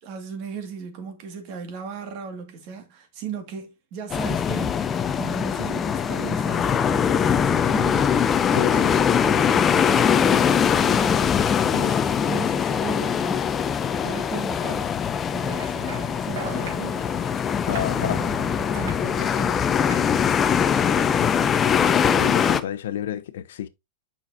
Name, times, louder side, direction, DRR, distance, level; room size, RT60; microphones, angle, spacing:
voice 1, 0.0-13.6 14.0-14.9 15.3-17.1 18.0-21.6, right 5 dB, 40° right, 1.8 m, -37 dB
sound 1, 4.1-22.6, left 7 dB, 20° left, 0.5 m, -22 dB
voice 2, 8.5-8.9 11.7-11.9 17.7-18.2 22.1-23.7, left 10 dB, 75° left, 0.6 m, -30 dB
sound 2, 15.4-21.7, right 5 dB, 75° right, 3.3 m, -41 dB
7.1 x 5.7 x 2.6 m
supercardioid pair, 155°, 0 cm